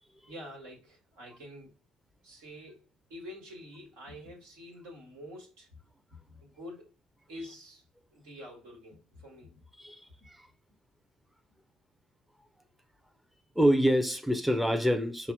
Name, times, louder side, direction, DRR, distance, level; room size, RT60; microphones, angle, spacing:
voice 1, 0.3-1.7 2.2-5.8 6.1-6.9 7.3-7.8 8.1-9.6, left 1 dB, 70° right, 1.4 m, -47 dB
voice 2, 9.8-10.5 13.6-15.3, equal, ahead, 0.6 m, -26 dB
5.7 x 2.0 x 3.5 m
figure-of-eight pair, 45°, 3 cm